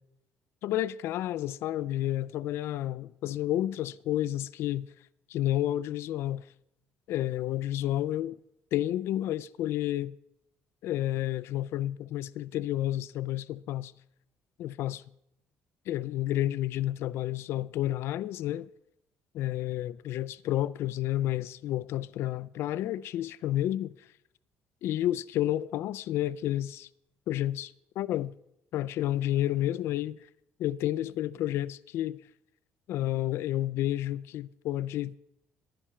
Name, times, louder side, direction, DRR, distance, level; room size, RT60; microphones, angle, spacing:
voice 1, 0.6-4.9 5.3-6.4 7.1-8.4 8.7-10.1 10.8-13.9 14.6-15.0 15.9-18.7 19.3-23.9 24.8-26.9 27.3-28.3 28.7-30.2 30.6-32.2 32.9-35.2, left 13 dB, 70° left, 0.3 m, -30 dB
10.5 x 10.0 x 4.3 m
cardioid pair, 150°, 4 cm